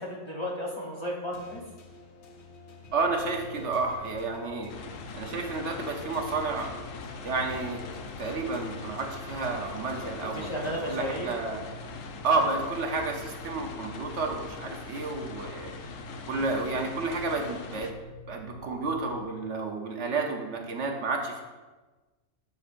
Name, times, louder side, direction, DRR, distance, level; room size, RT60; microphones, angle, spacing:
voice 1, 0.0-1.6 10.2-11.3, equal, 25° left, -3 dB, 1.1 m, -34 dB
sound 1, 1.3-11.9, left 4 dB, 60° left, 1.1 m, -49 dB
sound 2, 2.8-19.2, right 1 dB, 15° right, 1.5 m, -47 dB
voice 2, 2.9-4.7 5.1-6.7 7.2-7.8 8.2-11.6 12.2-15.7 16.3-17.9 18.3-21.4, right 3 dB, 65° right, 2 dB, 1.2 m, -31 dB
sound 3, 4.7-17.9, left 5 dB, 85° left, 1.1 m, -42 dB
12.5 x 5.5 x 2.6 m, 1.2 s
omnidirectional pair, 1.3 m